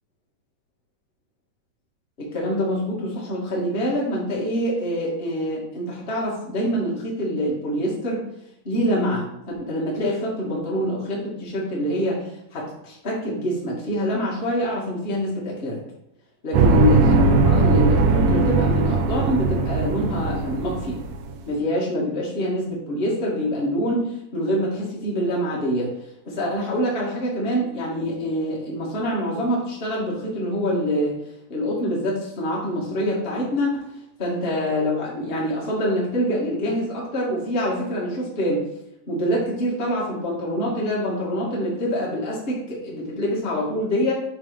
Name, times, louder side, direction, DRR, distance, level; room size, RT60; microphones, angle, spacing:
voice 1, 2.2-8.2 8.6-15.8 16.4-17.1 17.4-21.0 21.5-25.9 26.2-31.2 31.5-33.9 34.2-38.7 39.1-44.1, equal, 25° left, -4 dB, 1.5 m, -25 dB
sound 1, 16.5-21.3, right 3 dB, 80° right, 2.1 m, -19 dB
7.5 x 3.6 x 5.1 m, 0.80 s
omnidirectional pair, 4.0 m